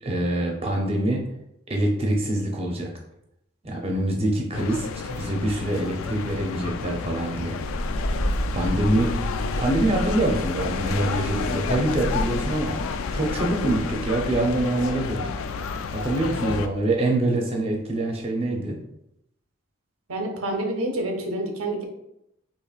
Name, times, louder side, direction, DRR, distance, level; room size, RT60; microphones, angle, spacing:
voice 1, 0.0-1.2 1.7-2.9 3.6-7.6 8.5-9.1 9.6-12.8 13.1-15.3 15.9-18.8, right 1 dB, 30° right, 0 dB, 0.6 m, -25 dB
sound 1, 4.5-16.7, left 5 dB, 80° left, 0.3 m, -31 dB
sound 2, 7.6-15.0 15.2-15.4 16.0-16.1, equal, 20° left, 1.1 m, -31 dB
voice 2, 20.1-21.8, right 1 dB, 85° right, 3 dB, 0.8 m, -28 dB
4.6 x 2.9 x 2.4 m, 0.81 s
head